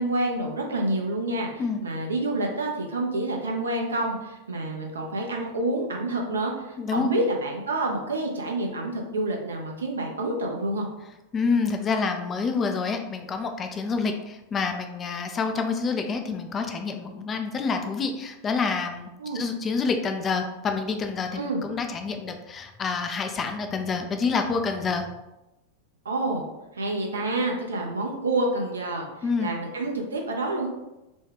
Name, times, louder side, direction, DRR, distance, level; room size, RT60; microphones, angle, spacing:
voice 1, 0.0-10.9 19.2-19.4 21.3-21.6 26.0-26.5 26.7-30.7, right 2 dB, 70° right, 1 dB, 0.6 m, -28 dB
voice 2, 6.8-7.1 11.3-25.2 29.2-29.5, left 4 dB, 25° left, 5 dB, 0.3 m, -28 dB
3.1 x 2.2 x 3.4 m, 0.96 s
figure-of-eight pair, 90°, 0 cm